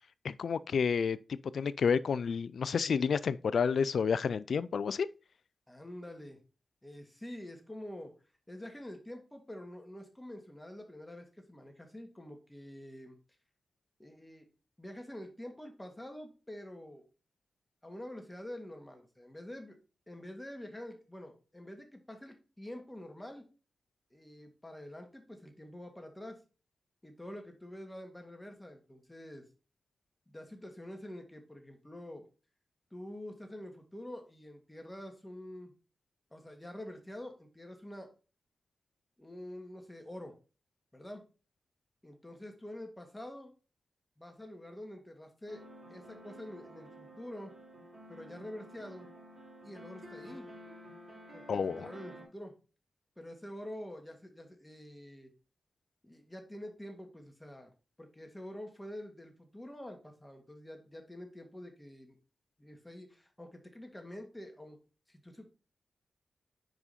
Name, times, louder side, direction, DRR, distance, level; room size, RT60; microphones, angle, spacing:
voice 1, 0.2-5.1 51.5-51.9, left 6 dB, 75° left, 0.3 m, -30 dB
voice 2, 5.7-6.4 6.8-8.1 8.5-13.2 14.0-14.5 14.8-17.0 17.8-19.8 20.1-23.4 24.1-26.4 27.0-29.4 30.3-32.2 32.9-35.7 36.3-38.1 39.2-40.3 40.9-41.2 42.0-43.5 44.2-45.6 45.9-47.6 48.1-49.1 49.6-50.5 51.3-52.6 53.2-55.3 56.0-57.7 58.0-62.2 62.6-64.8 65.1-65.5, left 1 dB, 15° left, 1.9 m, -47 dB
sound 1, 45.5-52.3, equal, 55° right, 2.6 m, -51 dB
5.1 x 4.8 x 4.1 m
supercardioid pair, 40°, 0 cm